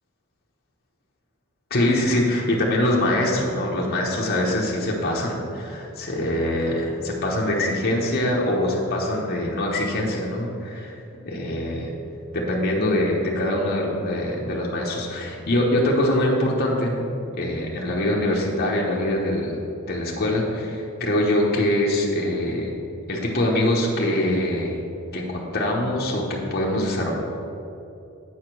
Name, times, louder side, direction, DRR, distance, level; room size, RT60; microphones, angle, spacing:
voice 1, 1.7-11.0 11.2-11.9 12.3-17.0 17.4-19.6 19.9-22.7 23.1-24.8 25.1-27.1, left 1 dB, 45° left, -3 dB, 1.1 m, -23 dB
8.1 x 5.0 x 6.1 m, 2.8 s
head